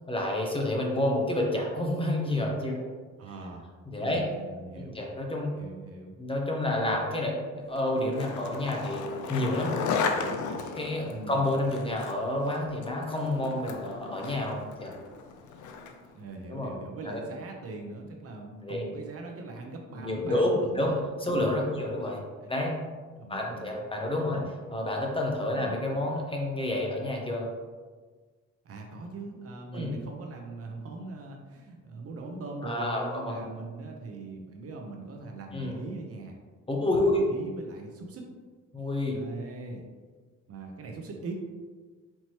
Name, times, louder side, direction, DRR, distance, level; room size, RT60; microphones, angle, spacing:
voice 1, 0.1-2.8 3.9-4.3 4.8-5.5 6.2-9.0 9.3-9.8 10.7-14.9 16.5-16.7 17.0-17.2 18.6-18.8 19.9-20.9 21.2-22.2 22.5-22.8 23.3-24.4 24.7-27.5 29.7-29.9 32.6-33.5 35.5-35.8 36.7-37.3 38.7-39.2, left 1 dB, 20° left, 0 dB, 0.7 m, -29 dB
voice 2, 3.2-3.7 4.0-5.0 5.5-6.2 11.1-11.4 16.1-21.0 21.3-21.9 22.4-22.5 23.2-23.8 24.3-24.5 25.5-25.8 28.6-36.4 37.0-38.3 39.1-39.8 40.5-41.3, right 3 dB, 50° right, 1 dB, 0.7 m, -41 dB
Skateboard, 7.8-16.1, left 5 dB, 75° left, 0.5 m, -35 dB
4.5 x 2.9 x 2.9 m, 1.4 s
cardioid pair, 90°, 30 cm